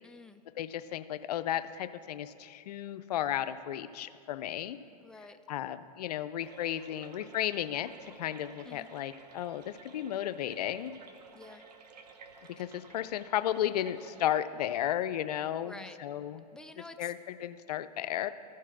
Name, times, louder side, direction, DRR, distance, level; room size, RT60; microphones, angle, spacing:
voice 1, 0.0-0.4 5.0-5.4 8.6-8.9 11.3-11.6 15.6-16.0 16.5-17.1, left 2 dB, 5° left, 7 dB, 0.3 m, -49 dB
voice 2, 0.6-4.8 5.5-10.9 12.6-16.4 17.0-18.3, left 11 dB, 75° left, 12 dB, 0.5 m, -34 dB
sound 1, 6.4-14.3, right 5 dB, 90° right, 0.8 m, -54 dB
14.0 x 4.6 x 6.0 m, 2.3 s
hypercardioid pair, 120°, 20 cm